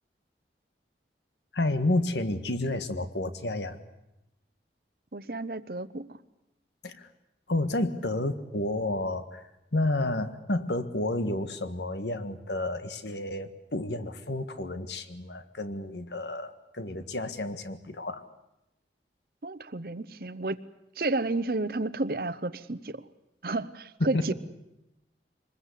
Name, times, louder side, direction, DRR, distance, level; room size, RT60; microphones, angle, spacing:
voice 1, 1.5-3.8 6.8-7.1 7.5-9.4 9.7-18.2 24.0-24.3, left 2 dB, 80° left, 10 dB, 1.6 m, -30 dB
voice 2, 5.1-6.2 19.4-20.6 21.0-23.0 23.4-24.3, right 2 dB, 55° right, 16 dB, 0.8 m, -31 dB
24.0 x 20.5 x 8.4 m, 0.89 s
head